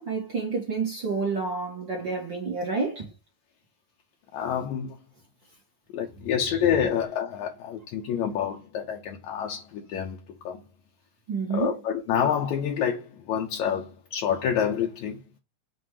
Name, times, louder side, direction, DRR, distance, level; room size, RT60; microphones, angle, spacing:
voice 1, 0.0-3.1 11.3-11.7, right 4 dB, 45° right, 1.5 m, -29 dB
voice 2, 4.3-5.0 5.9-10.2 10.4-10.6 11.5-15.2, left 8 dB, 75° left, 1.8 m, -28 dB
7.6 x 2.7 x 4.8 m
omnidirectional pair, 4.1 m